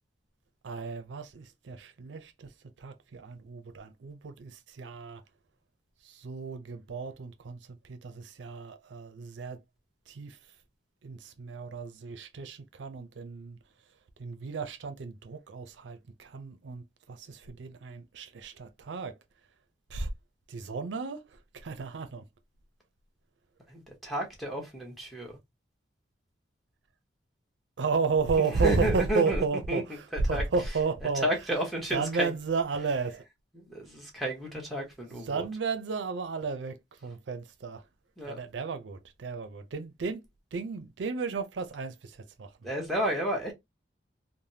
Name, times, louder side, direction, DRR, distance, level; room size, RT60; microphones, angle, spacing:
voice 1, 0.6-2.5 2.8-5.2 6.0-9.6 10.1-10.4 11.0-13.6 14.2-19.2 19.9-20.1 20.5-22.2 27.8-31.3 31.9-33.2 35.1-37.8 38.3-40.2 40.5-42.5, right 4 dB, 80° right, 0.4 m, -33 dB
voice 2, 23.7-25.4 28.4-29.8 30.1-30.4 31.1-32.3 33.5-35.5 38.2-38.4 42.6-43.5, right 1 dB, ahead, 1.0 m, -32 dB
3.3 x 2.1 x 2.6 m
head